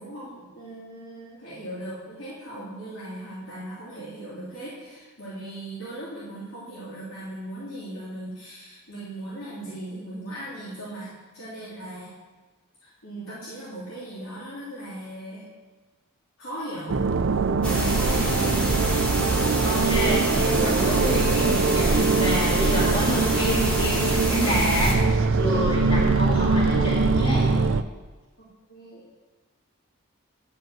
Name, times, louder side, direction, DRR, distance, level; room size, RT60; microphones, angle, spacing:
voice 1, 0.0-12.1 12.8-15.4 16.4-17.0 17.8-18.3 28.4-29.0, right 1 dB, 90° left, -10 dB, 3.2 m, -38 dB
sound 1, 16.9-27.8, right 4 dB, 60° right, 0.4 m, -23 dB
sound 2, 17.6-24.9, equal, 5° left, 1.6 m, -26 dB
voice 2, 19.6-25.0 25.3-27.5, equal, 25° left, -5 dB, 2.7 m, -28 dB
11.0 x 5.0 x 7.5 m, 1.3 s
head